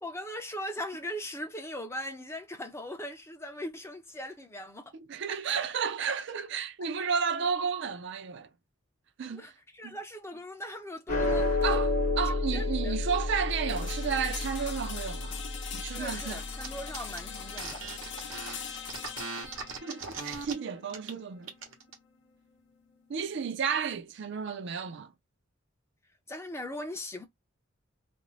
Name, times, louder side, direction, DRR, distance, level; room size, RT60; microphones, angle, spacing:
voice 1, 0.0-4.9 9.3-11.9 12.3-13.0 16.0-17.8 26.3-27.2, left 1 dB, 15° left, 0.5 m, -39 dB
voice 2, 4.9-8.5 9.2-9.5 9.8-10.0 11.6-11.9 12.2-15.4 15.7-16.4 19.8-21.5 23.1-25.1, right 6 dB, 60° right, 0.4 m, -32 dB
sound 1, 11.1-17.6, left 2 dB, 35° left, 0.9 m, -31 dB
sound 2, 13.7-23.6, left 7 dB, 60° left, 0.6 m, -42 dB
sound 3, 16.6-16.7 16.9-20.5 20.9-21.1 21.4-22.0, right 4 dB, 85° right, 0.8 m, -39 dB
2.5 x 2.0 x 3.1 m
head